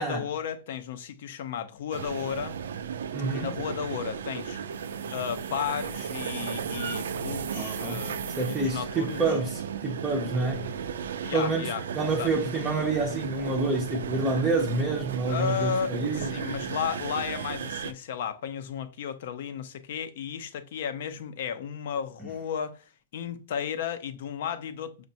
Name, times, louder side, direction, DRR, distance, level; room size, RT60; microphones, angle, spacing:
voice 1, 0.0-2.6 3.3-4.6 5.1-9.4 11.2-11.8 12.2-12.3 15.3-25.0, left 8 dB, 60° left, 0.5 m, -34 dB
sound 1, 1.9-17.9, right 7 dB, 90° right, 0.4 m, -35 dB
voice 2, 3.1-3.6 7.5-10.7 11.3-16.3, right 3 dB, 10° right, 0.5 m, -28 dB
6.0 x 2.2 x 2.7 m
supercardioid pair, 160°, 0 cm